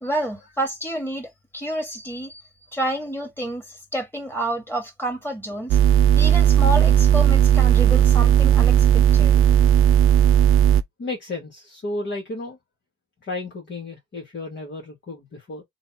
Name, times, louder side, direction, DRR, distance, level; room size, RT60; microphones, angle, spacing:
voice 1, 0.0-2.4 2.7-5.8 6.1-9.3, right 1 dB, 5° left, 2.1 m, -29 dB
sound 1, 5.7-10.8, right 10 dB, 45° right, 0.6 m, -16 dB
voice 2, 11.0-12.6 13.2-15.6, left 2 dB, 40° left, 2.1 m, -33 dB
3.9 x 2.6 x 4.3 m
hypercardioid pair, 65°, 30 cm